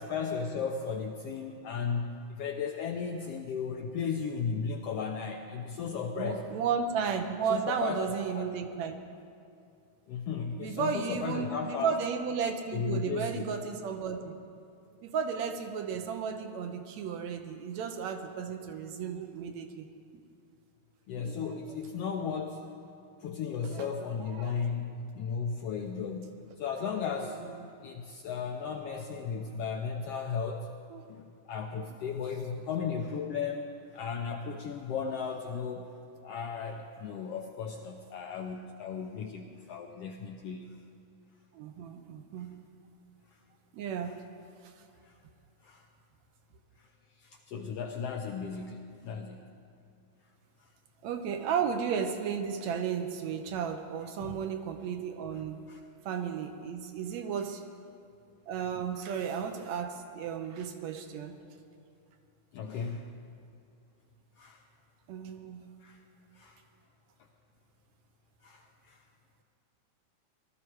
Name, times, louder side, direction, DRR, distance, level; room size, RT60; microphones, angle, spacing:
voice 1, 0.0-6.4 7.5-8.5 10.1-12.0 12.7-13.5 21.1-22.7 23.2-30.7 31.1-35.9 36.2-40.8 42.4-42.5 45.0-45.2 45.6-45.9 46.8-46.9 47.2-49.5 54.2-54.4 55.7-55.8 62.5-63.1 64.4-64.6 65.8-66.0 66.3-66.6 68.4-69.0, left 6 dB, 75° left, 3 dB, 1.4 m, -35 dB
voice 2, 6.2-9.0 10.6-14.4 15.0-19.9 21.2-21.5 23.7-24.6 30.9-31.0 41.5-42.5 43.7-44.2 51.0-55.6 56.1-57.6 58.5-61.4 65.1-65.7, right 6 dB, 75° right, 6 dB, 2.0 m, -34 dB
18.5 x 12.5 x 4.7 m, 2.5 s
omnidirectional pair, 3.4 m